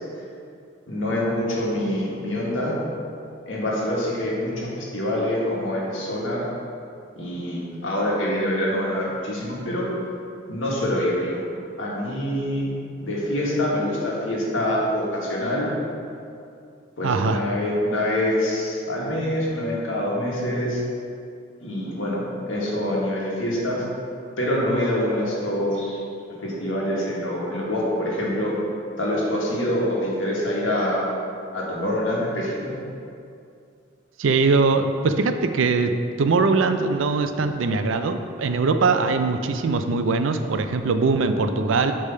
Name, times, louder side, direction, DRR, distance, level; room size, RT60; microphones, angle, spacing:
voice 1, 0.9-2.8 3.5-6.4 7.2-9.9 10.5-11.4 11.8-12.7 13.0-15.7 17.0-20.8 21.6-23.8 24.4-26.0 26.4-28.5 29.0-31.0 31.5-32.7, left 1 dB, 75° left, -4 dB, 1.7 m, -25 dB
voice 2, 17.0-17.4 34.2-35.9 36.2-41.9, right 4 dB, 75° right, 8 dB, 0.4 m, -21 dB
8.2 x 3.4 x 5.5 m, 2.5 s
head